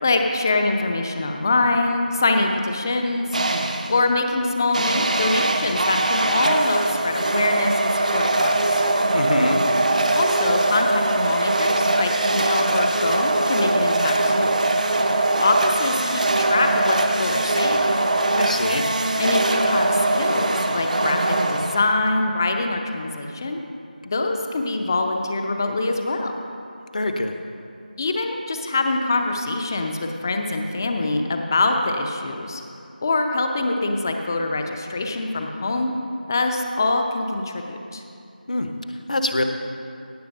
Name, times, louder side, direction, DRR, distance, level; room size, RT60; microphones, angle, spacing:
voice 1, 0.0-3.4 3.9-8.8 10.1-14.6 15.4-17.9 19.2-23.6 24.0-26.3 28.0-32.6 33.0-35.9 36.3-38.0, left 2 dB, 20° left, 4 dB, 0.7 m, -24 dB
sound 1, 3.3-4.0 4.7-22.1, right 2 dB, 50° right, 0.9 m, -21 dB
voice 2, 9.1-9.6 18.3-18.9 26.9-27.3 38.5-38.7 39.1-39.4, left 2 dB, 50° left, 6 dB, 1.0 m, -23 dB
17.5 x 7.1 x 5.4 m, 2.6 s
figure-of-eight pair, 170°, 5 cm